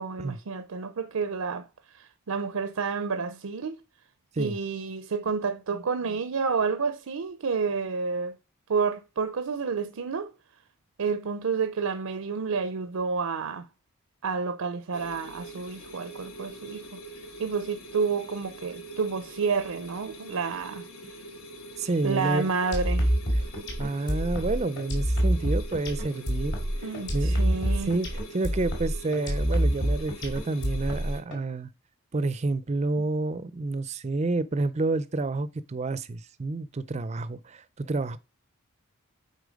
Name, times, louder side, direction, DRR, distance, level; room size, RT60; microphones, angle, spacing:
voice 1, 0.0-1.7 1.9-3.8 4.4-8.3 8.7-10.3 11.0-13.7 14.2-16.9 17.4-20.9 22.0-23.1 26.8-27.9, right 5 dB, 80° right, 0.6 m, -30 dB
sound 1, 14.9-31.2, right 1 dB, 70° left, 1.3 m, -44 dB
voice 2, 21.8-22.5 23.8-26.5 26.8-27.6 27.9-31.7 32.1-38.2, right 3 dB, 30° right, 0.4 m, -29 dB
sound 2, 22.7-31.4, equal, 50° left, 2.7 m, -27 dB
8.2 x 4.2 x 5.1 m
head